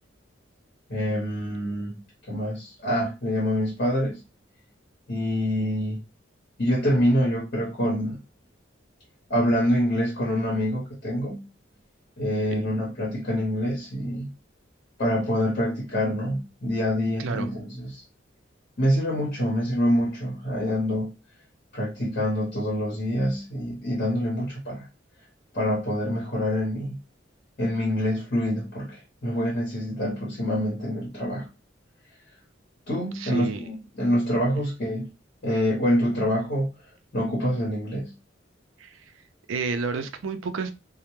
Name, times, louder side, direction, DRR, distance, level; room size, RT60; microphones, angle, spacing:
voice 1, 0.9-1.9 2.3-4.2 5.1-6.0 6.6-8.2 9.3-11.4 12.2-14.3 15.0-18.0 18.8-21.1 21.7-24.9 25.5-27.0 27.6-31.5 32.9-35.1 35.4-36.7 37.1-38.1, equal, 50° left, 0.9 m, -26 dB
voice 2, 33.1-33.7 38.8-39.1 39.5-40.7, right 4 dB, 90° right, 0.4 m, -31 dB
2.1 x 2.0 x 3.0 m
head